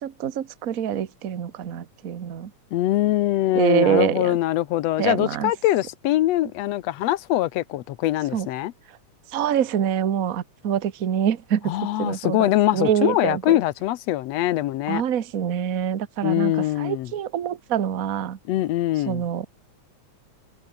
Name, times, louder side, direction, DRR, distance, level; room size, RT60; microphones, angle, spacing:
voice 1, 0.0-2.5 3.5-4.3 5.0-5.5 8.3-8.5 9.3-11.7 12.0-12.5 12.7-13.6 14.9-16.5 16.8-18.4 19.1-19.5, right 9 dB, 55° right, 0.9 m, -25 dB
voice 2, 2.7-8.7 11.7-15.0 16.2-17.1 18.5-19.3, left 14 dB, 70° left, 1.9 m, -23 dB
omnidirectional pair, 3.4 m